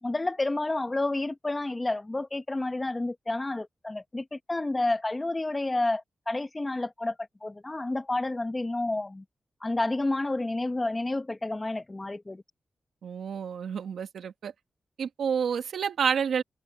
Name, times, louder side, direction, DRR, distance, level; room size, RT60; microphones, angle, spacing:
voice 1, 0.0-7.1 7.4-9.2 9.6-12.4, left 2 dB, 20° left, 1.6 m, -30 dB
voice 2, 13.0-14.5 15.0-16.4, right 7 dB, 85° right, 1.7 m, -29 dB
cardioid pair, 90°, 0 cm